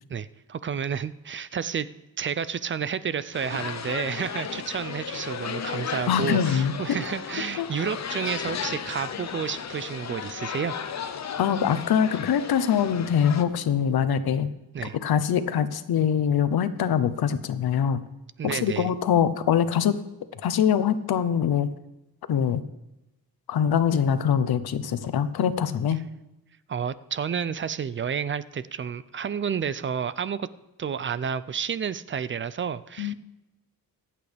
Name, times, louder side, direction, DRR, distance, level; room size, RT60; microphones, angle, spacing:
voice 1, 0.1-1.9 2.2-10.8 14.7-15.0 18.4-18.9 26.7-30.5 30.8-33.1, right 7 dB, 35° right, 16 dB, 0.4 m, -30 dB
sound 1, 3.3-13.4, left 7 dB, 45° left, 0.8 m, -34 dB
voice 2, 6.1-6.7 7.6-7.7 11.4-14.5 14.9-18.0 18.4-20.0 20.4-21.7 22.3-22.6 23.5-26.0 33.0-33.1, left 8 dB, 90° left, 13 dB, 0.9 m, -23 dB
24.0 x 8.6 x 3.4 m, 0.96 s
wide cardioid pair, 175°, 37 cm